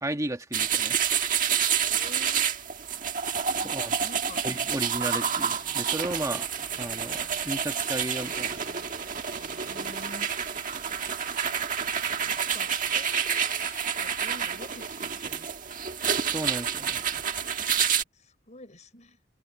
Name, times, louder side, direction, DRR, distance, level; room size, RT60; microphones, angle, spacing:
voice 1, 0.0-1.0 3.5-4.0 4.4-6.4 6.8-8.6 16.2-17.2, right 1 dB, 15° right, 1.8 m, -34 dB
sound 1, 0.5-18.0, right 7 dB, 45° right, 1.5 m, -29 dB
voice 2, 1.7-2.7 3.6-4.4 9.6-10.6 12.2-15.8 18.1-19.2, left 2 dB, 40° left, 6.1 m, -48 dB
sound 2, 3.6-16.5, left 5 dB, 60° left, 3.2 m, -53 dB
open air
head